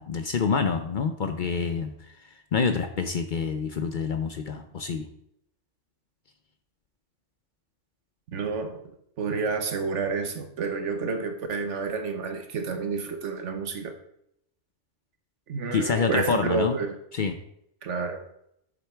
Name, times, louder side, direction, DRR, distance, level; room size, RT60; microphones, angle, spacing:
voice 1, 0.0-1.9 2.5-5.1 15.7-16.8 17.1-17.3, left 5 dB, 55° left, 7 dB, 0.6 m, -27 dB
voice 2, 8.3-8.8 9.2-13.9 15.5-17.0 17.8-18.2, right 4 dB, 75° right, 7 dB, 1.3 m, -29 dB
7.6 x 6.8 x 3.4 m, 0.74 s
omnidirectional pair, 1.2 m